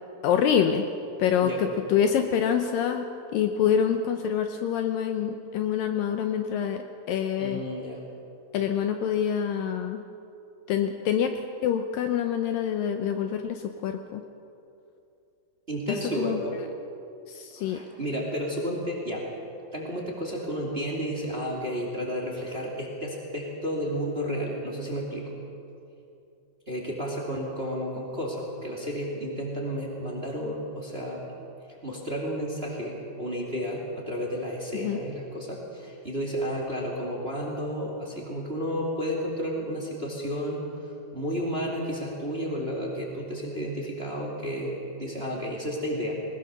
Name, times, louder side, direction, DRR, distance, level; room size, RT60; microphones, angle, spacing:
voice 1, 0.2-0.9 1.2-7.6 8.5-10.0 10.7-14.2 15.9-16.4 17.3-17.8 34.8-35.0, left 8 dB, 75° left, 6 dB, 2.3 m, -26 dB
voice 2, 7.4-8.0 15.7-16.5 17.6-19.2 19.7-25.3 26.7-31.2 31.8-40.6 41.1-46.2, equal, 20° right, -1 dB, 2.3 m, -32 dB
20.5 x 20.0 x 6.8 m, 2.7 s
omnidirectional pair, 4.5 m